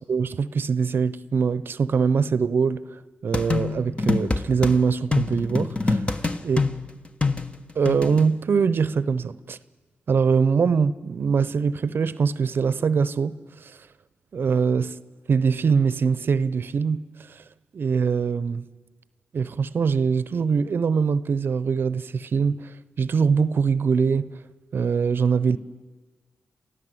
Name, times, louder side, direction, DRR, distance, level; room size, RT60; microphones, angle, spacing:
voice 1, 0.1-2.8 3.2-6.0 6.4-6.6 7.8-9.6 10.1-13.4 13.6-13.7 14.3-15.0 15.3-17.0 17.7-18.6 19.3-22.7 23.0-24.3 24.7-25.6, right 5 dB, 60° right, 0.8 m, -22 dB
sound 1, 3.3-4.7 5.1-8.2, left 3 dB, 25° left, 1.3 m, -25 dB
28.0 x 15.0 x 8.0 m
supercardioid pair, 50°, 4 cm